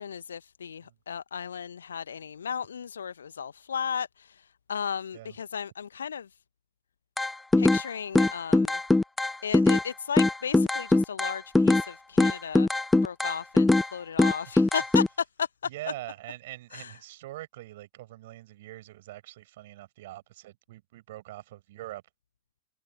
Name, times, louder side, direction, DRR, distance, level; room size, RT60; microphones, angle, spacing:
voice 1, 0.0-6.3 7.6-8.8 9.4-12.7 13.0-15.1 15.4-15.5 16.7-16.9, left 7 dB, 70° left, 1.0 m, -35 dB
sound 1, 7.2-7.9 8.2-9.9 10.2-11.9 12.2-13.9 14.2-15.1, left 2 dB, 5° left, 0.4 m, -21 dB
voice 2, 15.6-22.0, right 16 dB, 55° right, 7.1 m, -43 dB
figure-of-eight pair, 90°, 0 cm